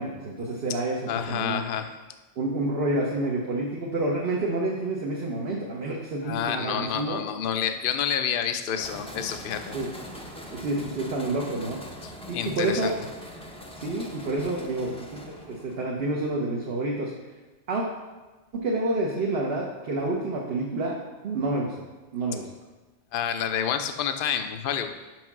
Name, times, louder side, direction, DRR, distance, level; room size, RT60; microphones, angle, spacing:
voice 1, 0.0-1.6 2.4-7.2 9.7-9.9 10.5-11.8 12.3-13.0 13.8-15.2 15.4-17.1 17.7-17.8 18.6-21.0 21.2-21.7 22.1-22.5, right 2 dB, 60° right, -3 dB, 1.1 m, -28 dB
voice 2, 1.1-1.9 6.2-9.7 12.0-13.0 23.1-24.9, left 8 dB, 55° left, 8 dB, 0.7 m, -29 dB
sound 1, 8.8-15.8, equal, 5° left, 0.6 m, -42 dB
6.2 x 5.5 x 6.0 m, 1.2 s
omnidirectional pair, 1.2 m